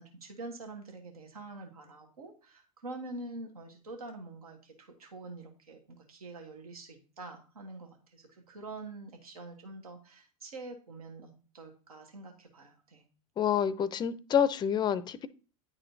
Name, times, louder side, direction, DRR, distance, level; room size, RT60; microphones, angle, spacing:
voice 1, 0.0-13.0, right 2 dB, 90° right, 1.2 m, -46 dB
voice 2, 13.4-15.3, left 8 dB, 25° left, 0.4 m, -28 dB
9.7 x 4.2 x 2.7 m
hypercardioid pair, 100°, 18 cm